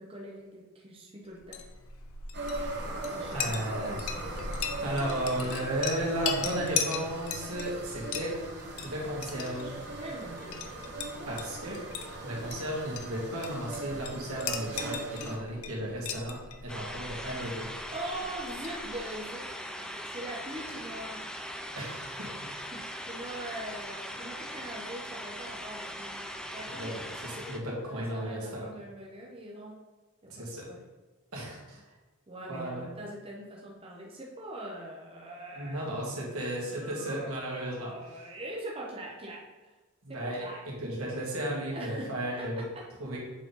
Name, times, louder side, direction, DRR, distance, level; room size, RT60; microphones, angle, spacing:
voice 1, 0.0-1.6 3.1-4.6 10.0-10.6 11.2-11.4 15.5-15.6 17.9-19.5 19.7-21.2 22.5-26.2 26.5-26.9 27.9-29.8 30.2-30.8 32.3-35.8 36.7-39.7 40.1-40.6 41.7-42.1 42.4-42.8, right 1 dB, 25° right, -3 dB, 0.8 m, -42 dB
Chink clink, 1.3-19.2, left 6 dB, 80° left, 0.7 m, -39 dB
sound 1, 2.3-15.4, right 2 dB, 50° right, 1.0 m, -40 dB
voice 2, 3.3-4.3 4.8-8.3 8.8-9.8 11.3-11.8 12.2-17.7 21.7-22.5 26.8-28.7 30.3-30.6 31.3-31.8 32.5-32.9 35.5-37.9 40.0-42.7 43.0-43.2, right 1 dB, 85° right, -4 dB, 2.0 m, -34 dB
sound 2, 16.7-27.6, equal, 5° left, 0.4 m, -40 dB
7.3 x 4.2 x 4.0 m, 1.2 s
head